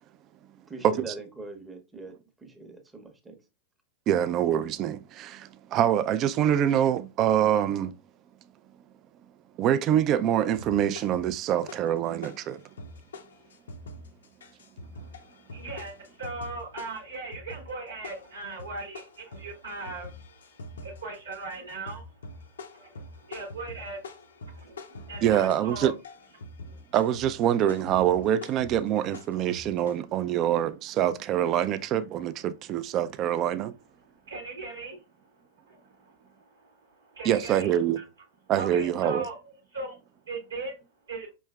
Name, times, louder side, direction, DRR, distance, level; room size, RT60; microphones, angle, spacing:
voice 1, 0.7-3.4, right 3 dB, 10° right, 0.8 m, -42 dB
voice 2, 4.1-7.9 9.6-12.6 25.2-25.9 26.9-33.8 37.2-38.0 38.5-39.2, right 10 dB, 40° right, 0.3 m, -25 dB
sound 1, 10.5-12.0 12.2-29.9, left 2 dB, 85° left, 0.5 m, -44 dB
voice 3, 14.9-20.4 20.8-25.9 26.6-26.8 34.2-35.0 35.6-38.0 38.6-40.0 40.3-40.8 41.1-41.3, right 3 dB, 90° right, 1.0 m, -39 dB
4.7 x 3.1 x 2.3 m
hypercardioid pair, 110°, 0 cm